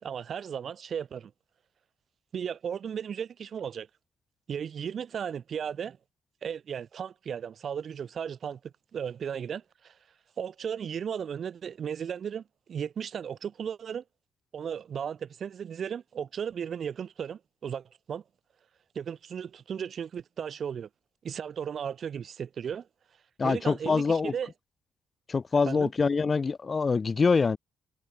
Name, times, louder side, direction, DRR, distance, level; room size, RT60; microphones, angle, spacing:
voice 1, 0.0-1.3 2.3-3.9 4.5-6.0 6.4-9.9 10.4-12.4 12.7-14.0 14.5-18.2 18.9-20.9 21.2-22.9 23.4-24.5 25.6-25.9, right 8 dB, 55° right, 3.0 m, -35 dB
voice 2, 23.4-24.3 25.3-27.6, left 4 dB, 35° left, 1.0 m, -25 dB
cardioid pair, 90°, 0 cm